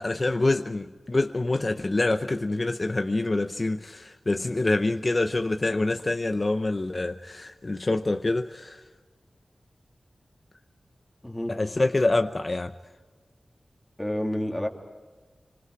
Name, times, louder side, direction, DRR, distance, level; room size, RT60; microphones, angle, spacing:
voice 1, 0.0-8.8 11.5-12.7, left 2 dB, 35° left, 0.7 m, -26 dB
voice 2, 11.2-11.5 14.0-14.7, left 1 dB, 5° left, 2.7 m, -29 dB
27.0 x 25.5 x 4.8 m
wide cardioid pair, 110°, 0 cm